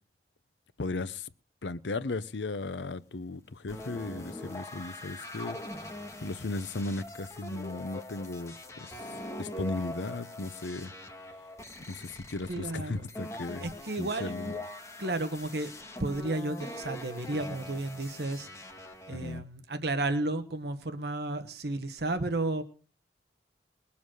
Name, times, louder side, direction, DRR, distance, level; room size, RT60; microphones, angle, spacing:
voice 1, 0.8-1.3 1.6-5.6 6.2-9.0 9.4-10.9 11.8-13.7 14.0-14.6 19.1-19.4, left 3 dB, 80° left, 0.7 m, -36 dB
sound 1, 3.7-19.4, left 1 dB, 15° left, 1.6 m, -43 dB
voice 2, 12.5-13.1 13.6-14.3 15.0-15.7 16.0-18.5 19.1-22.6, right 2 dB, 60° right, 1.2 m, -32 dB
21.0 x 7.1 x 6.4 m
head